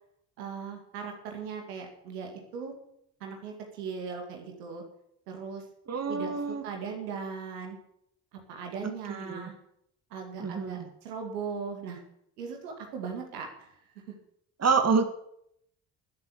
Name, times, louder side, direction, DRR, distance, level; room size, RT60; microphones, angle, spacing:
voice 1, 0.4-2.7 3.2-4.8 5.3-5.6 6.1-7.8 8.3-9.5 10.1-12.0 12.4-14.1, right 5 dB, 80° right, 3 dB, 2.2 m, -39 dB
voice 2, 5.9-6.6 8.8-9.5 10.4-10.9 14.6-15.0, right 5 dB, 35° right, 7 dB, 2.1 m, -27 dB
13.5 x 8.1 x 8.6 m, 0.74 s
figure-of-eight pair, 45°, 46 cm